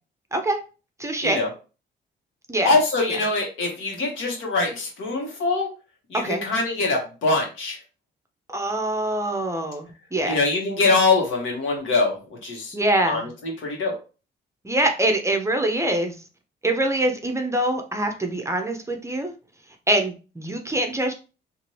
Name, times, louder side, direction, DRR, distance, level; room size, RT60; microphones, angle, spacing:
voice 1, 1.0-1.4 2.5-2.7 6.1-6.4 8.5-10.4 12.7-13.3 14.6-16.1 16.6-19.3 19.9-21.1, right 1 dB, 15° right, 5 dB, 0.6 m, -24 dB
voice 2, 2.6-5.7 6.1-7.8 10.2-12.7 13.1-14.0, left 3 dB, 80° left, 0 dB, 1.2 m, -23 dB
2.7 x 2.5 x 3.1 m, 0.33 s
cardioid pair, 90°, 20 cm